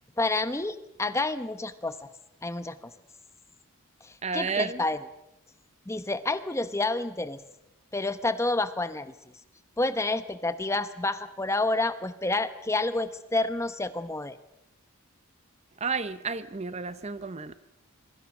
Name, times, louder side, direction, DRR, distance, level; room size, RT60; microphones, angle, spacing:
voice 1, 0.2-2.1 2.4-2.8 4.0-5.0 5.9-7.4 7.9-9.1 9.8-14.4, left 2 dB, 15° left, 12 dB, 0.8 m, -29 dB
voice 2, 4.2-4.8 15.8-17.5, right 4 dB, 30° right, 13 dB, 0.8 m, -31 dB
26.0 x 23.5 x 6.1 m, 0.90 s
head